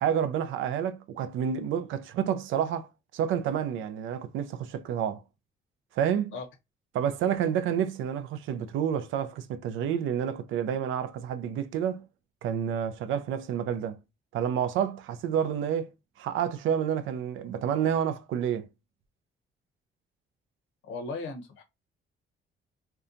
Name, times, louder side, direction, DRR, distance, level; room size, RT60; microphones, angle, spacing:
voice 1, 0.0-5.2 6.0-6.3 6.9-12.1 12.4-14.0 14.3-15.9 16.2-18.7, right 8 dB, 80° right, 0.4 m, -29 dB
voice 2, 20.8-21.6, left 3 dB, 80° left, 0.8 m, -36 dB
2.7 x 2.2 x 2.5 m
cardioid pair, 90°, 20 cm